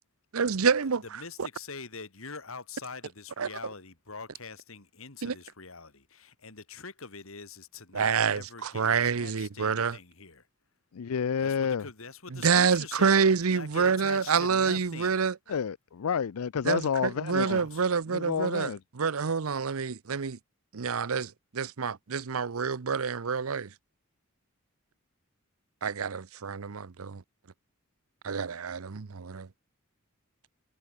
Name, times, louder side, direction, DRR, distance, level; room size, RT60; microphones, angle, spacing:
voice 1, 0.3-1.0 1.4-1.5 3.4-3.5 5.2-5.3 7.9-10.0 12.3-15.3 16.6-20.4 20.7-23.7 25.8-27.2 28.2-29.5, right 6 dB, 80° right, 0.7 m, -27 dB
voice 2, 1.1-10.5 11.4-13.1 13.4-15.2 17.4-17.8, left 4 dB, 70° left, 2.9 m, -44 dB
voice 3, 10.9-11.9 15.5-17.6 18.1-18.8, left 7 dB, 85° left, 0.5 m, -29 dB
head